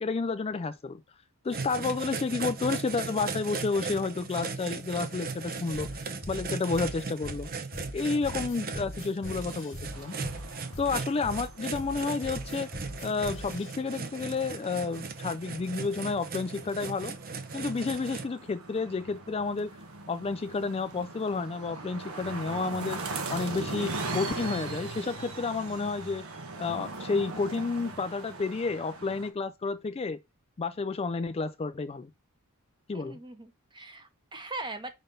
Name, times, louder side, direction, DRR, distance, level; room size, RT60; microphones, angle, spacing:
voice 1, 0.0-1.0 1.4-6.0 6.3-7.5 7.9-10.2 10.8-12.7 13.0-17.1 17.5-19.7 20.1-26.3 26.6-30.2 30.6-32.1 32.9-33.2, left 4 dB, 25° left, 0.4 m, -31 dB
sound 1, 1.5-18.2, right 4 dB, 40° right, 0.8 m, -37 dB
sound 2, 5.7-13.7, left 1 dB, 60° left, 1.0 m, -42 dB
sound 3, 9.9-29.3, right 3 dB, 65° right, 1.2 m, -41 dB
voice 2, 32.9-34.9, right 2 dB, 20° right, 1.1 m, -40 dB
5.2 x 4.0 x 5.4 m
head